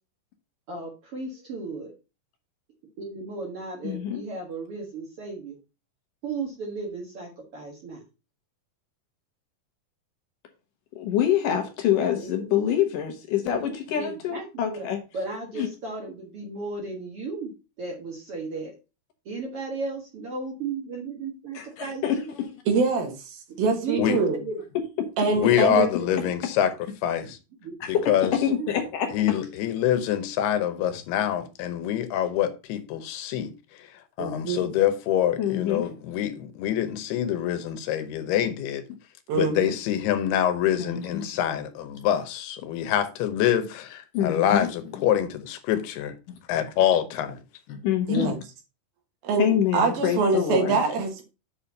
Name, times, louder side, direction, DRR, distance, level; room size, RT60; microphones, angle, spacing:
voice 1, 0.7-1.9 3.0-5.5 6.2-8.0 12.2-12.7 13.4-14.9 15.1-17.5 17.8-18.7 19.2-22.3 23.5-24.6 25.5-26.3 27.6-27.7 28.2-28.7, right 3 dB, 55° right, 1.8 m, -35 dB
voice 2, 3.8-4.2 11.0-15.0 15.6-15.7 21.6-22.5 27.8-29.1 35.4-35.9 40.8-41.3 44.1-44.7 47.7-48.3 49.4-50.8, left 9 dB, 70° left, 2.4 m, -26 dB
voice 3, 22.7-23.3 23.6-24.4 25.2-25.9 34.2-34.6 39.3-39.7 48.1-48.4 49.2-51.3, right 4 dB, 75° right, 3.1 m, -24 dB
voice 4, 25.4-26.7 27.0-27.4 28.1-28.3 29.1-38.8 39.3-46.1 46.5-47.4, left 10 dB, 90° left, 2.9 m, -25 dB
7.8 x 4.3 x 5.2 m
omnidirectional pair, 4.5 m